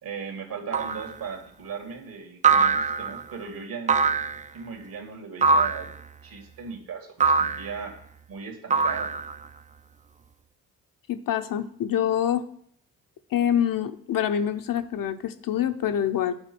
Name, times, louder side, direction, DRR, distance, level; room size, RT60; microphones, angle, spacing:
voice 1, 0.0-4.1 4.5-5.9 6.2-8.0 8.3-9.1, right 6 dB, 65° right, 4 dB, 2.2 m, -37 dB
sound 1, 0.7-1.1 2.4-3.2 3.9-4.5 5.4-5.9 7.2-7.7 8.7-9.5, right 5 dB, 20° right, 0.4 m, -22 dB
voice 2, 11.1-12.4 13.3-16.3, left 9 dB, 60° left, 8 dB, 0.8 m, -25 dB
8.9 x 4.4 x 6.0 m, 0.66 s
supercardioid pair, 50°, 37 cm